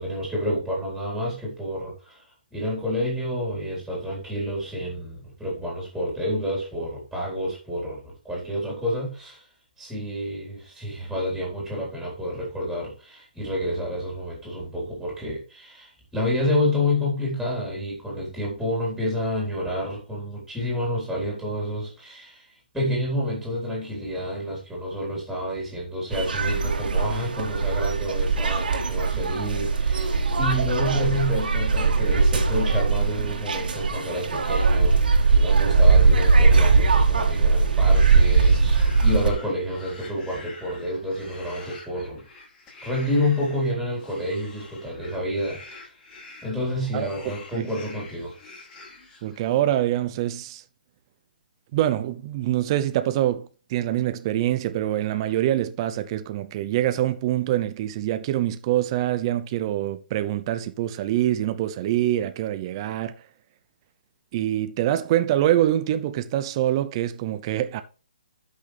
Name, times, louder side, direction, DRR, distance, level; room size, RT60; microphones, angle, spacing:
voice 1, 0.0-2.2 2.5-9.5 9.8-42.2 42.8-45.9 46.4-48.4, left 1 dB, ahead, 4.2 m, -29 dB
sound 1, 26.1-39.3, right 4 dB, 70° right, 2.2 m, -20 dB
sound 2, 37.7-49.7, left 3 dB, 20° left, 5.8 m, -46 dB
voice 2, 46.9-47.7 49.2-50.6 51.7-63.1 64.3-67.8, right 13 dB, 30° right, 0.7 m, -25 dB
12.0 x 6.3 x 3.4 m
hypercardioid pair, 150°, 5 cm